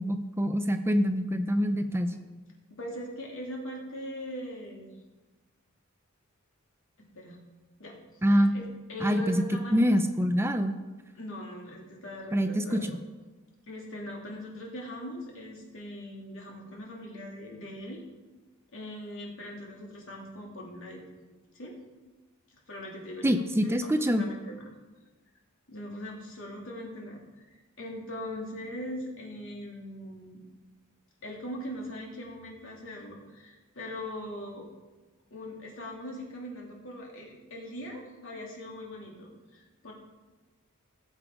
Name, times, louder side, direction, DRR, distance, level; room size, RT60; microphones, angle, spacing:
voice 1, 0.0-2.1 8.2-8.5 9.0-9.4 9.7-10.7 12.3-12.9 23.2-24.2, equal, 10° right, 8 dB, 0.5 m, -25 dB
voice 2, 2.7-5.0 7.1-7.4 7.8-8.6 8.9-9.9 11.1-13.0 13.7-18.0 18.7-21.0 21.5-21.7 22.5-24.7 25.7-27.2 27.5-30.4 31.2-34.7 35.3-39.9, left 1 dB, 65° left, -1 dB, 2.9 m, -41 dB
17.0 x 6.9 x 4.8 m, 1.2 s
head